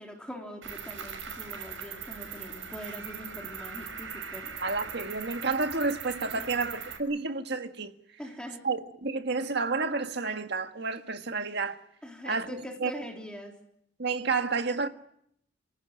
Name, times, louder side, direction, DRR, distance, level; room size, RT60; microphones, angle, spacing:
voice 1, 0.0-4.6 6.3-6.6 8.2-8.6 12.0-13.5, equal, 5° left, 3.7 m, -43 dB
Cricket, 0.6-7.0, right 6 dB, 70° right, 5.9 m, -40 dB
voice 2, 4.6-7.9 8.6-11.8 12.2-12.5 12.8-12.9 14.0-14.9, right 4 dB, 55° right, 1.8 m, -30 dB
28.5 x 17.5 x 9.1 m
head